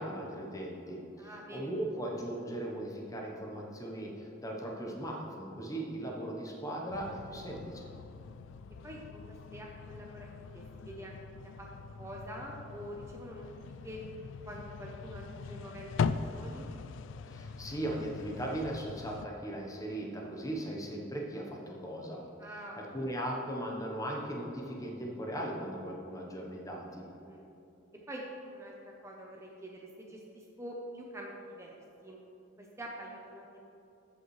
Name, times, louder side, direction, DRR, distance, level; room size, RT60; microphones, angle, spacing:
voice 1, 0.0-7.9 17.3-22.2 22.8-27.1, right 1 dB, 15° left, -1 dB, 1.0 m, -38 dB
voice 2, 1.2-1.7 8.8-11.2 11.6-11.7 12.0-13.5 13.8-14.0 14.4-16.0 16.3-16.7 22.4-22.8 27.2-27.5 28.1-28.7 29.0-31.8 32.0-32.2 32.6-33.6, equal, 15° right, -2 dB, 0.8 m, -45 dB
sound 1, 6.9-19.3, left 5 dB, 70° left, 0.3 m, -41 dB
14.0 x 5.6 x 3.2 m, 2.8 s
head